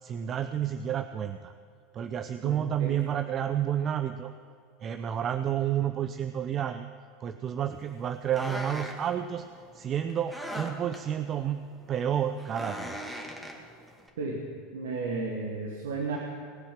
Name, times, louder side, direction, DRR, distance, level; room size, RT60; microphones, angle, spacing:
voice 1, 0.0-1.5 1.9-4.3 4.8-6.9 7.2-9.5 9.7-11.6 11.9-13.0, right 9 dB, 40° right, 10 dB, 0.6 m, -30 dB
voice 2, 2.4-3.1 14.2-16.2, right 3 dB, 75° right, 1 dB, 1.5 m, -34 dB
sound 1, 7.6-14.1, equal, 5° right, 2.2 m, -40 dB
18.5 x 7.2 x 7.6 m, 2.4 s
hypercardioid pair, 85°, 0 cm